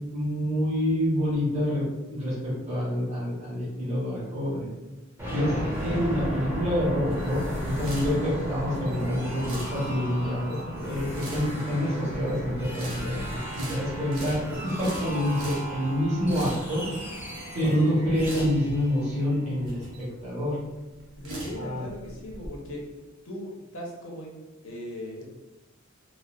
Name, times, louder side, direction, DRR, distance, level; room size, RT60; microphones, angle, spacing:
voice 1, 0.1-4.7 5.3-5.5 5.8-16.8 17.5-20.6 21.5-21.8, equal, 35° right, -9 dB, 1.1 m, -27 dB
sound 1, 5.2-19.9, equal, 10° right, 0.7 m, -35 dB
sound 2, 6.4-22.5, right 1 dB, 90° right, 0.9 m, -41 dB
voice 2, 21.2-22.8 23.2-24.3 24.6-25.3, equal, 85° left, -1 dB, 0.8 m, -38 dB
4.0 x 2.0 x 2.4 m, 1.1 s
head